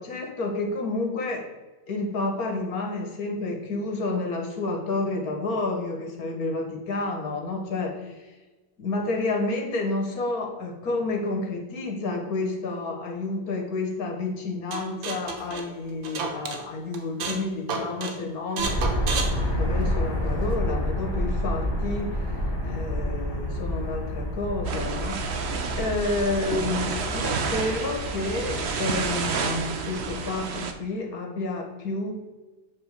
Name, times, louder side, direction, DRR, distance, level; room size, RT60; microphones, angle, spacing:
voice 1, 0.0-1.5 1.9-8.4 8.8-18.8 19.4-22.3 22.6-25.4 25.7-32.1, left 2 dB, 50° left, 2 dB, 1.9 m, -30 dB
sound 1, 14.7-16.6 16.9-17.4 17.7-18.2 18.6-20.2, right 4 dB, 85° right, 1.9 m, -31 dB
sound 2, 18.6-30.1, left 1 dB, 15° left, 1.9 m, -29 dB
sound 3, 24.6-30.7, right 5 dB, 65° right, 0.6 m, -30 dB
7.9 x 4.0 x 6.5 m, 1.2 s
omnidirectional pair, 2.1 m